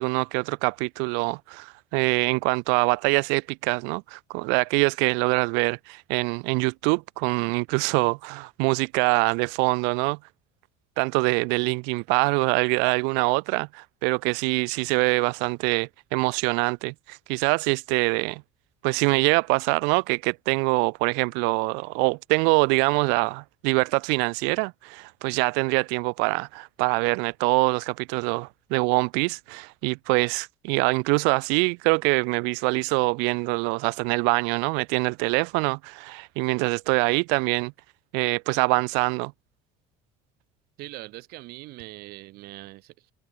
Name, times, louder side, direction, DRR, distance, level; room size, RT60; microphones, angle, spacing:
voice 1, 0.0-10.2 11.0-18.4 18.8-37.7 38.1-39.3, right 37 dB, 85° right, 1.2 m, -24 dB
voice 2, 40.8-43.1, right 20 dB, 60° right, 1.7 m, -42 dB
cardioid pair, 150°, 18 cm